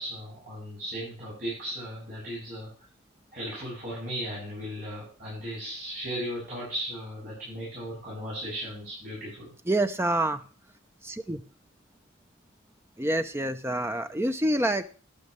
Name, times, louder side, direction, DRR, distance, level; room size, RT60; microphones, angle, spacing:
voice 1, 0.0-2.7 3.3-9.5, equal, 40° right, -8 dB, 7.9 m, -36 dB
voice 2, 9.7-10.4 11.0-11.4 13.0-14.8, right 1 dB, 10° right, 9 dB, 0.7 m, -27 dB
12.0 x 12.0 x 3.2 m, 0.38 s
head